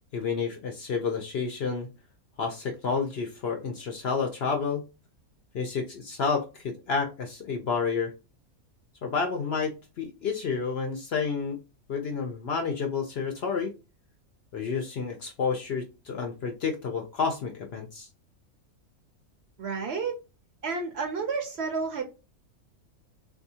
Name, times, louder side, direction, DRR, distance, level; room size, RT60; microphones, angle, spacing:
voice 1, 0.1-1.9 2.4-4.8 5.5-8.1 9.0-11.6 11.9-13.7 14.5-18.1, left 5 dB, 60° left, 3 dB, 0.7 m, -30 dB
voice 2, 19.6-20.2 20.6-22.0, right 4 dB, 60° right, 4 dB, 0.8 m, -30 dB
3.4 x 2.7 x 2.7 m, 0.29 s
omnidirectional pair, 1.5 m